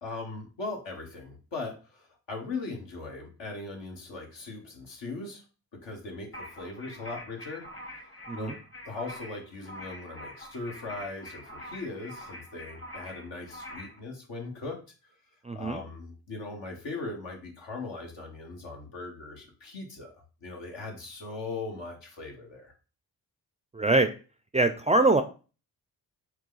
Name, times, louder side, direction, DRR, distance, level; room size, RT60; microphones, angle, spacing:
voice 1, 0.0-5.4 5.8-7.6 7.9-8.6 8.8-14.8 15.5-20.1 20.4-22.7, left 3 dB, 70° left, 1 dB, 1.5 m, -39 dB
sound 1, 6.3-14.0, equal, 30° left, 1.1 m, -44 dB
voice 2, 15.4-15.8 23.7-24.1 24.5-25.2, right 2 dB, 15° right, 8 dB, 0.4 m, -23 dB
4.7 x 2.3 x 3.9 m, 0.35 s
supercardioid pair, 40°, 45 cm